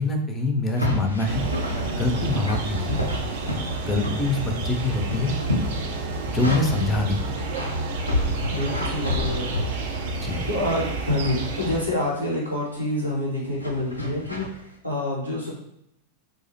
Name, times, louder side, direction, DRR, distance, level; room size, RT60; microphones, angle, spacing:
voice 1, 0.0-1.4 1.9-3.0 3.8-5.3 6.3-7.3 10.2-10.4, left 2 dB, 20° left, 3 dB, 0.4 m, -25 dB
sound 1, 0.7-4.6 4.8-6.9 7.3-10.2 10.6-11.4 11.9-12.2 13.6-14.6, left 1 dB, 90° left, 0.4 m, -30 dB
sound 2, 1.3-11.8, right 3 dB, 55° right, 0.4 m, -30 dB
voice 2, 8.5-9.7 10.5-14.4 14.8-15.5, left 1 dB, 90° right, -5 dB, 0.8 m, -27 dB
2.3 x 2.0 x 2.6 m, 0.77 s
figure-of-eight pair, 90°, 0 cm